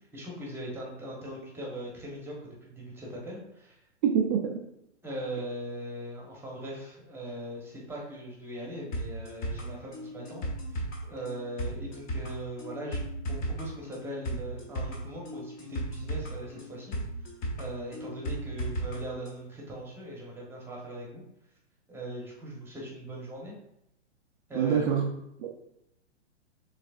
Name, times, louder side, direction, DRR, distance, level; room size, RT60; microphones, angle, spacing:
voice 1, 0.1-3.8 5.0-10.4 10.7-13.0 13.3-16.9 17.6-21.2 21.9-23.5 24.5-25.0, right 1 dB, 5° right, -3 dB, 1.1 m, -40 dB
voice 2, 4.0-4.6 24.5-25.0 25.4-25.5, right 7 dB, 30° right, -3 dB, 0.5 m, -25 dB
sound 1, 8.9-19.0 19.3-19.4, right 1 dB, 25° left, 0.8 m, -35 dB
6.3 x 3.3 x 2.5 m, 0.81 s
hypercardioid pair, 125°, 36 cm